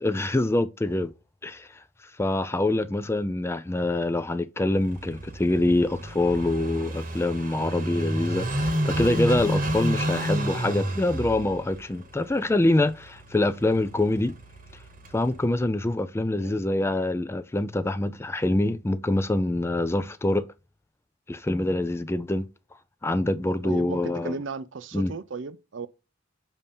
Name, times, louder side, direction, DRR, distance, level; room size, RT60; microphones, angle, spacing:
voice 1, 0.0-1.1 1.4-1.7 2.2-14.3 15.1-20.5 21.3-22.4 23.0-24.4 24.9-25.1, left 2 dB, 15° left, 0.4 m, -25 dB
Car passing by / Idling, 4.8-15.4, right 1 dB, 45° right, 1.1 m, -31 dB
voice 2, 23.6-25.9, right 4 dB, 70° right, 0.5 m, -36 dB
7.2 x 2.8 x 5.2 m
head